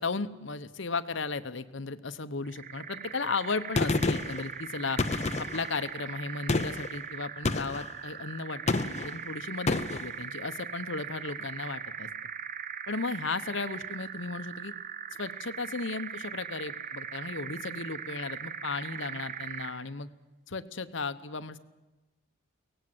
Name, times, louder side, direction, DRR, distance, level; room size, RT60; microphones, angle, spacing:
voice 1, 0.0-12.1 12.9-14.7 15.2-20.1 20.5-21.6, left 4 dB, 60° left, 12 dB, 0.9 m, -35 dB
sound 1, 2.5-19.9, right 7 dB, 40° right, 0.7 m, -40 dB
Gunshot gunfire, 3.8-4.4 5.0-5.7 6.5-6.9 7.5-7.9 8.7-9.2 9.7-10.1, left 2 dB, 30° left, 0.7 m, -29 dB
23.5 x 18.0 x 7.9 m, 1.1 s
head